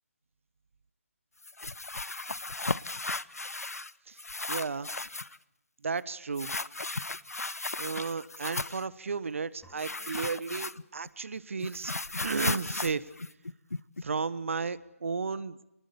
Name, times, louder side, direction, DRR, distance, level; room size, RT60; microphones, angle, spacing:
sound 1, 1.4-3.9 4.2-5.4 6.4-8.9 9.8-11.1 11.4-14.0, left 3 dB, 90° left, 0.9 m, -35 dB
voice 1, 4.5-4.9 5.8-6.5 7.8-11.9 12.2-13.1 14.0-15.7, right 5 dB, 60° right, 17 dB, 1.2 m, -33 dB
sound 2, 9.6-11.4, equal, ahead, 3.1 m, -63 dB
28.0 x 19.5 x 7.0 m, 0.87 s
figure-of-eight pair, 155°, 8 cm